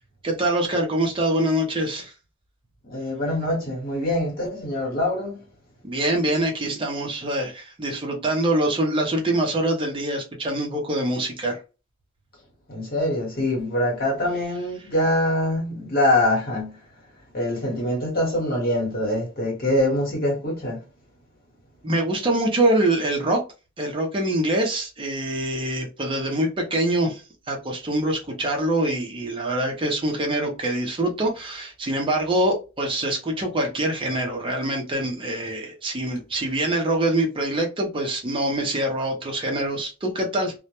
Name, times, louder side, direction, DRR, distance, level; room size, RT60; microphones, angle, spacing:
voice 1, 0.2-2.1 5.8-11.6 21.8-23.4 23.8-27.2 27.5-40.5, right 1 dB, 25° right, 0.5 m, -24 dB
voice 2, 2.8-5.4 12.7-16.8 17.3-20.8, left 1 dB, 50° left, 1.0 m, -24 dB
2.1 x 2.1 x 2.8 m
head